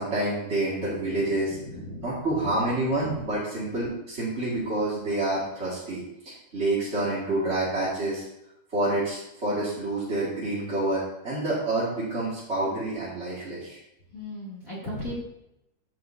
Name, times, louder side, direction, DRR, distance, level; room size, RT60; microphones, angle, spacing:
voice 1, 0.0-1.6 2.0-8.2 8.7-13.8, right 2 dB, 25° right, -9 dB, 1.5 m, -28 dB
voice 2, 0.8-2.1 2.4-2.5 14.1-15.2, left 1 dB, 25° left, -6 dB, 2.5 m, -38 dB
14.5 x 6.5 x 2.8 m, 0.86 s
omnidirectional pair, 4.6 m